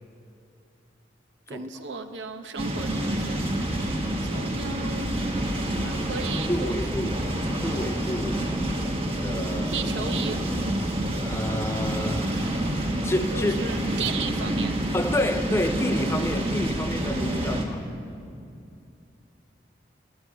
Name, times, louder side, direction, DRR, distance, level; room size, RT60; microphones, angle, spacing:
voice 1, 1.5-3.5 4.3-5.1 5.8-7.2 9.5-10.5 13.3-14.8, right 4 dB, 85° right, 7 dB, 0.8 m, -35 dB
sound 1, 2.6-17.6, right 1 dB, 30° right, 1.2 m, -28 dB
voice 2, 6.2-8.4 9.2-9.8 11.2-12.5 12.9-13.6 14.9-17.9, left 1 dB, 15° left, 7 dB, 0.5 m, -29 dB
11.0 x 8.7 x 9.1 m, 2.6 s
head